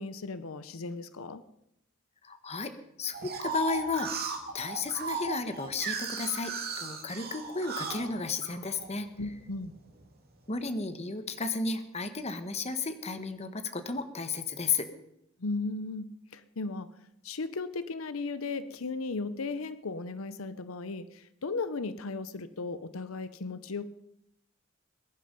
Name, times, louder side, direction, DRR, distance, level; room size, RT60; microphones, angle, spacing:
voice 1, 0.0-1.4 9.2-9.7 15.4-16.9 17.2-23.9, left 3 dB, 85° left, 14 dB, 0.8 m, -36 dB
voice 2, 2.2-2.7 3.0-4.3 4.5-9.1 10.5-14.9, left 4 dB, 30° left, 9 dB, 1.2 m, -33 dB
sound 1, 3.1-8.9 9.4-10.1, right 5 dB, 50° right, 2.6 m, -36 dB
21.5 x 11.0 x 5.3 m, 0.81 s
head